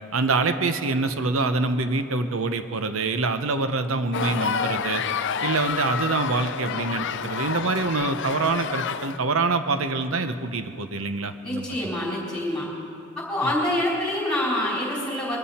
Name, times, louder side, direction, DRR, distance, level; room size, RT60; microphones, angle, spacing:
voice 1, 0.1-5.0 5.4-11.8, right 3 dB, 70° right, 9 dB, 0.8 m, -25 dB
sound 1, 4.1-9.2, left 6 dB, 55° left, 0.4 m, -29 dB
voice 2, 11.4-12.7 13.2-15.4, left 1 dB, 5° left, -5 dB, 4.0 m, -26 dB
22.0 x 13.5 x 4.3 m, 2.5 s
head